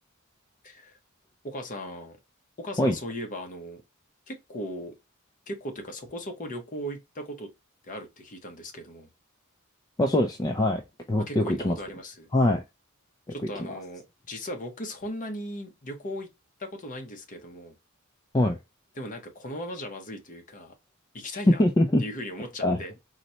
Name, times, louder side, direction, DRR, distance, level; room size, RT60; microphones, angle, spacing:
voice 1, 1.4-2.2 2.6-3.8 4.3-4.9 5.5-7.5 7.8-9.1 11.2-12.3 13.3-16.3 16.6-17.7 19.0-20.7 21.1-21.6 22.0-22.9, equal, 40° left, 0.8 m, -38 dB
voice 2, 10.0-10.8 11.1-11.8 12.3-12.6 13.3-13.8 18.3-18.6 21.6-22.0 22.6-22.8, left 1 dB, 15° left, 0.3 m, -23 dB
4.0 x 2.1 x 2.7 m
head